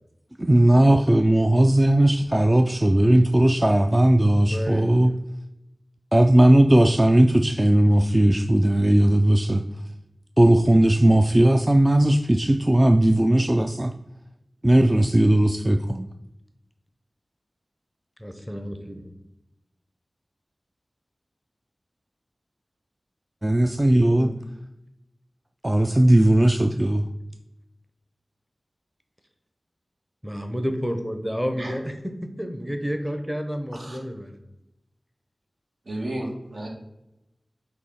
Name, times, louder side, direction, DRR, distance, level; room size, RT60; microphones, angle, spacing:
voice 1, 0.4-5.1 6.1-9.6 10.4-13.9 14.6-16.1 23.4-24.3 25.6-27.0, right 1 dB, 20° right, 6 dB, 0.3 m, -18 dB
voice 2, 4.5-4.9 18.2-19.1 24.1-24.4 30.2-34.4, equal, 5° right, 5 dB, 0.8 m, -30 dB
voice 3, 35.8-36.7, right 1 dB, 70° right, -1 dB, 1.7 m, -33 dB
8.1 x 2.8 x 5.5 m, 0.92 s
wide cardioid pair, 65°, 0 cm